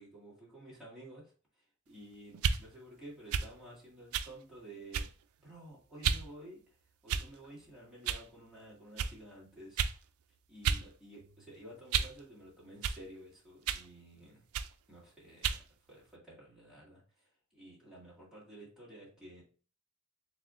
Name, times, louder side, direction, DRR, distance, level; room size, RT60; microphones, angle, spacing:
voice 1, 0.0-5.1 5.4-6.6 7.0-9.8 10.5-14.3 14.9-15.6 15.9-19.4, right 1 dB, 5° right, -7 dB, 1.8 m, -52 dB
sound 1, 2.3-2.6 3.3-3.5 4.1-4.3 4.9-5.2 6.0-6.3 7.1-7.5 8.1-8.3 9.0-9.1 9.8-10.0 10.6-10.9 11.2-12.2 12.8-13.0 13.7-13.9 14.5-14.7 15.4-15.6, right 7 dB, 90° right, 0.3 m, -32 dB
4.2 x 3.4 x 2.4 m, 0.40 s
head